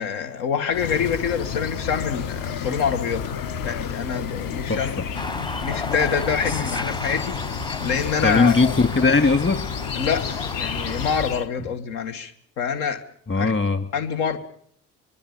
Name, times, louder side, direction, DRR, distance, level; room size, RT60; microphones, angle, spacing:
voice 1, 0.0-3.2 3.6-4.9 5.6-7.4 7.8-8.5 10.0-13.0 13.4-13.5 13.9-14.4, left 6 dB, 75° left, 7 dB, 2.0 m, -26 dB
sound 1, 0.7-11.5, left 7 dB, 55° left, 1.6 m, -30 dB
sound 2, 5.1-11.2, left 2 dB, 10° left, 1.0 m, -33 dB
voice 2, 8.2-9.6 13.3-13.8, left 3 dB, 30° left, 9 dB, 3.0 m, -19 dB
24.5 x 23.0 x 7.1 m, 0.64 s
hypercardioid pair, 60°, 40 cm